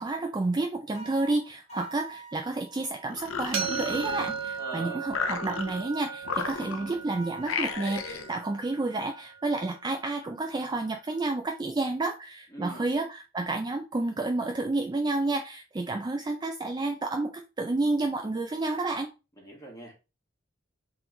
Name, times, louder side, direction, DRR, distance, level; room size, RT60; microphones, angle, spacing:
voice 1, 0.0-19.1, right 2 dB, 20° right, 4 dB, 0.3 m, -30 dB
sound 1, 0.9-3.1 3.8-5.0 6.3-8.5, right 4 dB, 35° left, 1.3 m, -47 dB
sound 2, 3.1-4.6 5.1-5.9 6.2-7.0 7.4-8.3, left 5 dB, 75° left, 0.5 m, -34 dB
sound 3, 3.5-9.4, right 6 dB, 70° right, 1.3 m, -36 dB
voice 2, 4.6-5.0 12.5-12.9 19.4-19.9, right 2 dB, 15° left, -1 dB, 1.5 m, -41 dB
3.9 x 3.0 x 3.8 m, 0.29 s
head